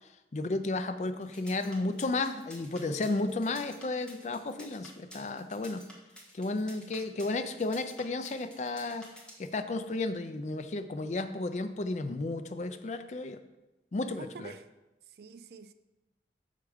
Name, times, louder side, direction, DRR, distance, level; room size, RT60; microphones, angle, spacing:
voice 1, 0.3-5.8 6.3-9.1 9.4-13.4 13.9-14.5, left 2 dB, 40° left, 0.4 m, -33 dB
sound 1, 1.2-9.5, left 1 dB, 5° left, 1.1 m, -51 dB
voice 2, 6.8-7.7 14.2-14.7 15.1-15.7, right 5 dB, 65° right, 0.4 m, -49 dB
6.5 x 4.7 x 4.9 m
head